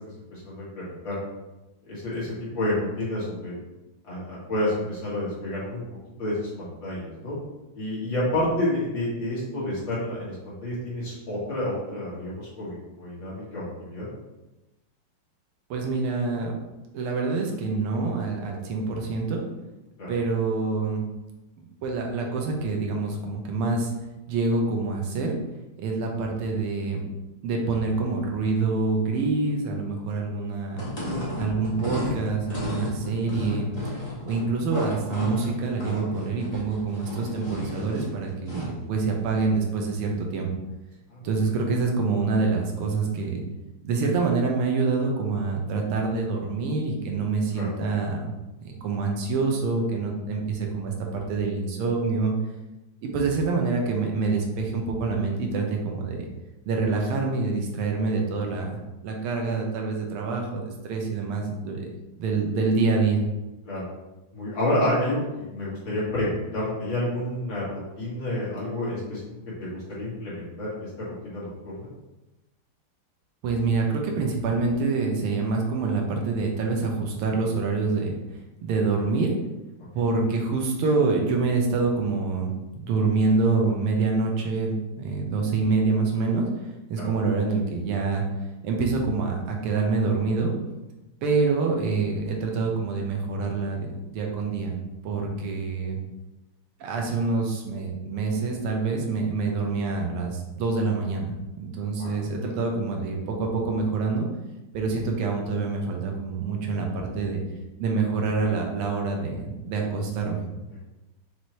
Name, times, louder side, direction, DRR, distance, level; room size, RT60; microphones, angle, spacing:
voice 1, 0.3-1.2 1.8-3.6 4.1-5.8 6.2-7.4 7.8-14.1 20.0-20.1 41.1-41.3 47.5-47.7 63.6-63.9 64.3-69.3 69.6-71.9 87.0-87.1 102.0-102.1, left 1 dB, 60° left, -8 dB, 2.5 m, -29 dB
voice 2, 15.7-16.5 16.9-19.4 20.1-21.0 21.8-23.9 24.3-25.3 25.8-27.0 27.4-30.9 31.4-33.7 34.2-40.5 41.2-43.4 43.8-48.3 48.6-52.3 53.0-56.3 56.7-58.8 59.0-61.8 62.2-63.2 73.4-78.1 78.6-79.3 79.9-82.5 82.7-86.5 86.9-88.2 88.6-90.5 91.2-94.7 95.0-96.0 96.8-104.3 104.7-107.4 107.8-110.4, right 4 dB, 90° right, 1 dB, 1.7 m, -26 dB
sound 1, 30.7-38.8, equal, 25° left, 0.9 m, -33 dB
6.0 x 2.7 x 3.1 m, 1.0 s
omnidirectional pair, 2.4 m